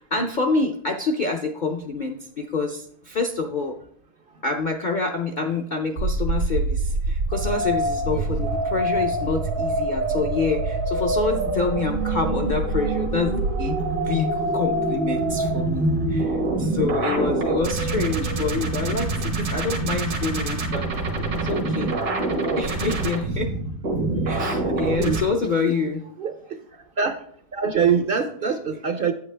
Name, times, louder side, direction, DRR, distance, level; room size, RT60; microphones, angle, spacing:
voice 1, 0.0-3.8 4.4-21.9 22.6-23.5 24.2-26.0, left 4 dB, 60° left, 2 dB, 0.5 m, -27 dB
sound 1, 6.0-25.2, right 2 dB, 90° right, 1.9 m, -25 dB
voice 2, 17.9-18.5 19.4-19.5 20.3-20.5 24.0-24.1 24.6-24.7 25.0-25.2 25.6-25.7 26.2-26.6 27.0-27.2 27.5-29.1, right 6 dB, 60° right, 7 dB, 0.6 m, -25 dB
8.4 x 8.3 x 3.3 m, 0.64 s
omnidirectional pair, 1.6 m